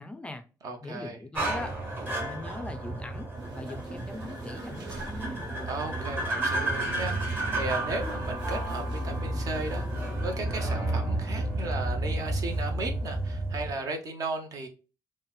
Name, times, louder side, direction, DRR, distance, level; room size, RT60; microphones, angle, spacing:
voice 1, 0.0-0.4 0.8-1.8 2.0-5.5, left 2 dB, 15° left, 0.4 m, -41 dB
voice 2, 0.6-1.2 5.6-14.7, right 3 dB, 55° right, 0.8 m, -36 dB
sound 1, 1.4-13.7, right 1 dB, 30° right, 1.1 m, -31 dB
sound 2, 3.3-10.2, right 2 dB, 80° right, 1.0 m, -43 dB
4.0 x 2.1 x 2.3 m
cardioid pair, 140°, 7 cm